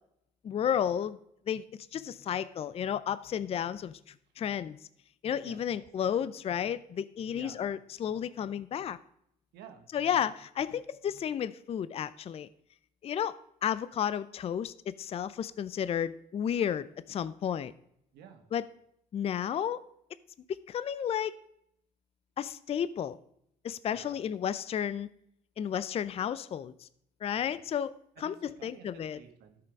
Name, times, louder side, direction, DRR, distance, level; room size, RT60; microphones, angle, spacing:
voice 1, 0.4-1.2 1.5-4.0 4.4-4.8 5.2-9.0 9.9-12.5 13.0-17.7 18.5-18.7 19.1-19.8 20.5-21.3 22.4-23.2 23.6-25.1 25.6-26.9 27.2-29.2, left 9 dB, 35° left, 16 dB, 0.4 m, -32 dB
voice 2, 7.3-7.7 9.5-9.9 18.1-18.5 23.9-24.2 27.3-27.5 28.2-28.3 28.6-29.6, right 7 dB, 80° right, 6 dB, 1.7 m, -51 dB
12.5 x 5.7 x 5.2 m, 0.73 s
cardioid pair, 110°, 17 cm